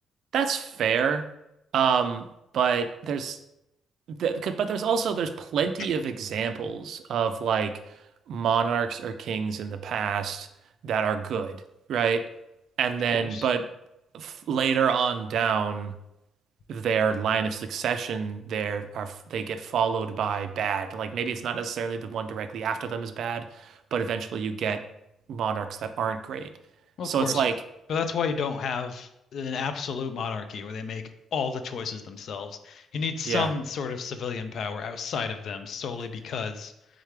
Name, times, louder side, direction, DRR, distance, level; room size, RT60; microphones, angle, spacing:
voice 1, 0.3-1.3 1.7-2.3 2.5-3.4 4.1-7.9 8.3-10.5 10.8-11.6 11.9-12.3 12.8-13.7 14.1-15.9 16.7-24.8 25.3-26.5 27.0-27.6 33.3-33.5, right 7 dB, 70° right, 9 dB, 0.3 m, -27 dB
voice 2, 13.1-13.5 27.0-27.4 27.9-31.0 31.3-36.7, left 5 dB, 65° left, 9 dB, 0.4 m, -31 dB
3.6 x 3.3 x 3.2 m, 0.86 s
cardioid pair, 90°, 0 cm